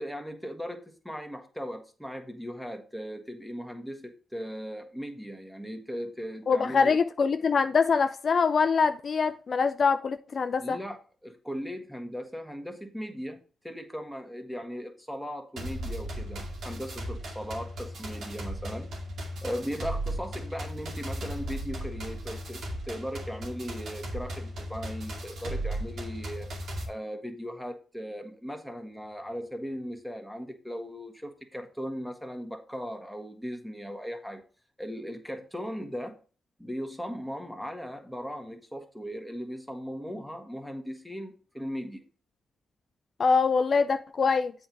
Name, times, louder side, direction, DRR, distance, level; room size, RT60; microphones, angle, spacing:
voice 1, 0.0-7.0 10.6-11.0 11.2-18.9 19.4-26.5 26.8-34.4 34.8-36.2 36.6-42.0, equal, ahead, 1.7 m, -38 dB
voice 2, 6.5-10.8 43.2-44.5, left 5 dB, 55° left, 0.4 m, -24 dB
sound 1, 15.6-26.8, right 1 dB, 70° right, 2.3 m, -36 dB
7.9 x 4.6 x 5.4 m
supercardioid pair, 55°, 0 cm